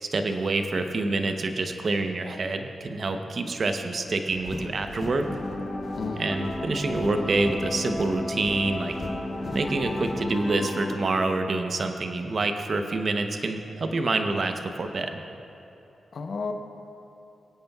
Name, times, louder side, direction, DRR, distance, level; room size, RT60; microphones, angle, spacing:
voice 1, 0.0-5.2 6.2-8.9 9.5-15.2, right 3 dB, 55° right, 6 dB, 0.8 m, -27 dB
sound 1, 4.3-10.4, left 1 dB, 45° left, 2.4 m, -40 dB
sound 2, 5.3-11.0, left 1 dB, 25° left, 1.1 m, -33 dB
voice 2, 5.9-6.4 16.1-16.5, left 4 dB, 65° left, 5 dB, 0.9 m, -32 dB
23.0 x 8.7 x 2.4 m, 2.9 s
cardioid pair, 55°, 0 cm